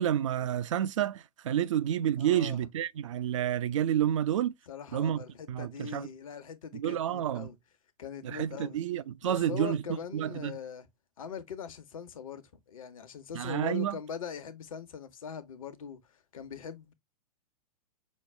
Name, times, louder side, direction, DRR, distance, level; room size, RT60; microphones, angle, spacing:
voice 1, 0.0-4.5 4.9-5.2 5.5-6.1 6.7-7.5 8.2-9.8 10.1-10.5 13.3-14.0, right 10 dB, 55° right, 0.5 m, -29 dB
voice 2, 2.2-2.7 4.7-7.6 8.0-8.8 9.2-10.9 11.2-16.0 16.3-16.9, left 7 dB, 60° left, 1.1 m, -41 dB
6.3 x 2.3 x 3.3 m
figure-of-eight pair, 105°, 20 cm